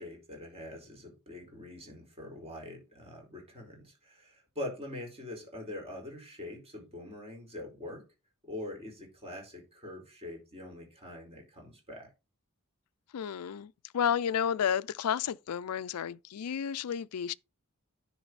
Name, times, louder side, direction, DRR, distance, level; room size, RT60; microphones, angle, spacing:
voice 1, 0.0-8.0 8.4-12.1, left 1 dB, 30° right, 4.6 m, -43 dB
voice 2, 13.1-17.3, left 8 dB, 85° left, 0.4 m, -31 dB
10.0 x 6.0 x 4.0 m
head